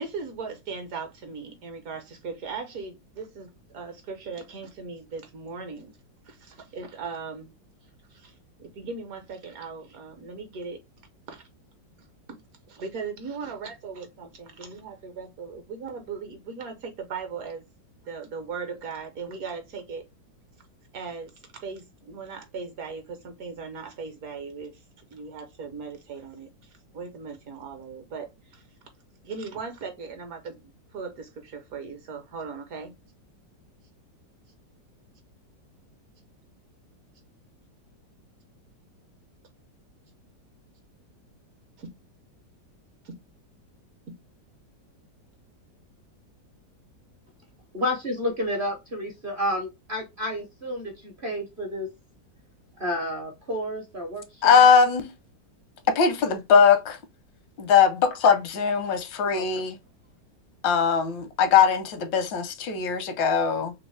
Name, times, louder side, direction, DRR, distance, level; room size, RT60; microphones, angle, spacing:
voice 1, 0.0-6.0 6.2-7.5 8.1-10.8 11.3-11.4 12.7-17.6 18.0-20.0 20.9-21.3 21.6-24.8 25.1-28.7 29.2-30.6 30.9-32.9 41.8-41.9 43.0-43.1, right 5 dB, 60° right, 1.1 m, -38 dB
voice 2, 47.7-51.9 52.8-54.7 59.3-59.6, equal, 45° right, 0.7 m, -30 dB
voice 3, 54.4-55.1 55.9-57.0 57.6-59.8 60.6-63.7, left 6 dB, 85° left, 1.5 m, -20 dB
3.5 x 2.9 x 3.2 m
omnidirectional pair, 2.0 m